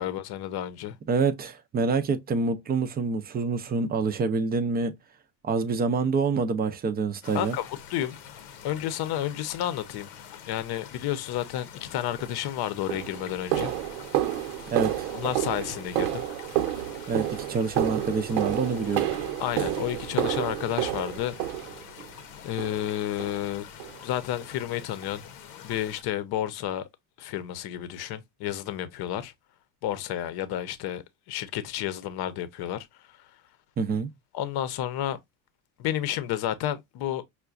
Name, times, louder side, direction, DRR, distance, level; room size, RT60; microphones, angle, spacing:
voice 1, 0.0-1.0 7.3-8.2 8.6-10.1 10.5-13.7 15.1-16.2 19.4-21.4 22.4-23.7 24.0-25.2 25.6-26.9 27.2-29.3 29.8-32.9 34.3-35.2 35.8-37.2, left 11 dB, 50° left, 0.7 m, -31 dB
voice 2, 1.1-4.9 5.4-7.6 14.7-15.1 17.1-19.1 33.8-34.1, right 4 dB, 20° right, 0.4 m, -26 dB
sound 1, 7.2-26.0, left 8 dB, 85° left, 0.9 m, -46 dB
sound 2, 12.2-12.3 12.9-22.1 22.6-22.9 23.2-23.4 23.8-24.0 24.4-24.5 25.0-25.1, right 12 dB, 90° right, 0.9 m, -30 dB
5.7 x 2.2 x 2.3 m
cardioid pair, 120°, 49 cm